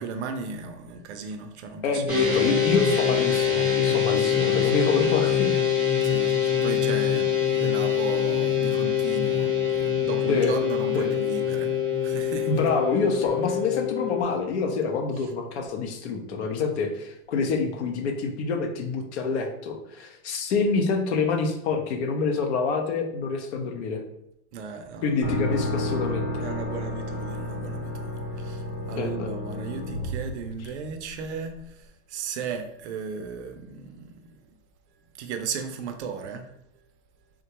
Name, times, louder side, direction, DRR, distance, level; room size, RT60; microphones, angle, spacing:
voice 1, 0.0-2.7 4.2-4.7 6.0-11.8 12.0-12.5 24.5-25.1 26.4-34.5 35.2-36.5, right 5 dB, 60° right, 6 dB, 0.5 m, -36 dB
voice 2, 1.8-5.6 10.3-10.5 10.9-11.1 12.5-24.0 25.0-26.5 28.9-29.3 30.6-30.7, left 4 dB, 55° left, 4 dB, 0.6 m, -27 dB
sound 1, 2.1-14.2, left 8 dB, 5° right, 0.7 m, -24 dB
sound 2, 25.2-31.1, left 1 dB, 85° left, 1.1 m, -31 dB
3.6 x 2.2 x 2.9 m, 0.78 s
supercardioid pair, 165°, 40 cm